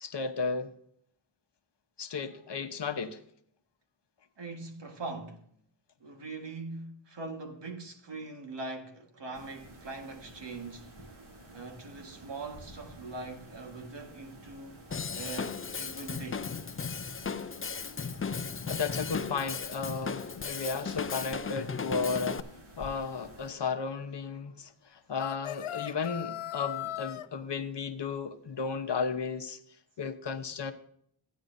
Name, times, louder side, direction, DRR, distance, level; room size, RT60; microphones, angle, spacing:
voice 1, 0.0-0.7 2.0-3.2 18.7-22.5 22.8-29.6 30.0-30.7, left 5 dB, 55° left, 1.0 m, -34 dB
voice 2, 4.4-5.4 6.0-10.9 11.5-14.8 15.1-16.5, right 3 dB, 60° right, 1.6 m, -42 dB
sound 1, 9.3-23.5, right 1 dB, 75° right, 3.7 m, -52 dB
Drum kit / Drum, 14.9-22.4, left 5 dB, 30° left, 0.5 m, -36 dB
sound 2, 25.2-27.3, left 13 dB, 85° left, 0.6 m, -38 dB
15.5 x 9.4 x 2.6 m
wide cardioid pair, 100°, 48 cm